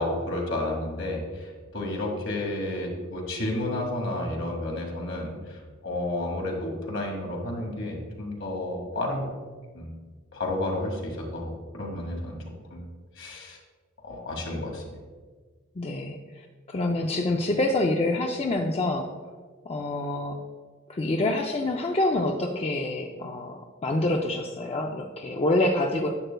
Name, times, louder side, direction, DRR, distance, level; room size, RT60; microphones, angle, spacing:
voice 1, 0.0-9.2 9.7-10.0 10.3-12.4 12.7-12.8 13.2-13.6 14.0-14.8, left 1 dB, 65° left, 0 dB, 1.9 m, -31 dB
voice 2, 15.8-19.1 19.7-20.4 20.9-26.1, left 2 dB, 30° left, 2 dB, 0.5 m, -27 dB
11.0 x 7.8 x 2.2 m, 1.4 s
head